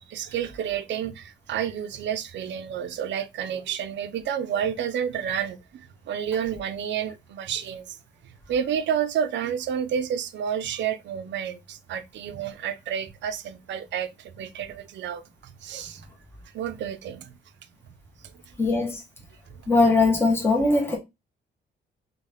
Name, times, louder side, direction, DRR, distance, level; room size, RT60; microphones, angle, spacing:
voice 1, 0.1-5.6 6.1-8.0 8.5-16.0 16.5-17.3 19.5-19.6, right 8 dB, 65° right, 0.5 m, -30 dB
voice 2, 18.6-19.0 19.7-21.0, left 3 dB, 10° left, 1.1 m, -20 dB
3.2 x 2.3 x 3.4 m
cardioid pair, 90°, 20 cm